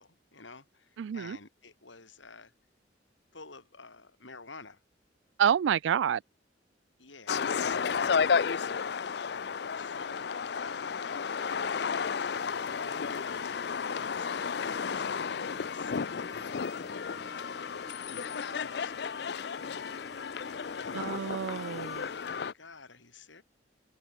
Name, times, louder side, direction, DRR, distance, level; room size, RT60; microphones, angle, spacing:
voice 1, 0.0-2.5 3.3-4.8 7.0-8.9 9.7-12.1 12.8-13.5 13.9-16.8 17.1-17.8 18.1-19.2 20.8-21.6 22.0-23.4, left 4 dB, 85° left, 3.6 m, -51 dB
voice 2, 1.0-1.4 5.4-6.2 20.9-22.1, right 8 dB, 80° right, 0.3 m, -28 dB
sound 1, 7.3-22.5, left 6 dB, 60° left, 0.5 m, -33 dB
sound 2, 8.3-22.2, equal, ahead, 0.7 m, -55 dB
Wind instrument woodwind instrument, 14.6-18.6, equal, 25° left, 7.1 m, -62 dB
open air
head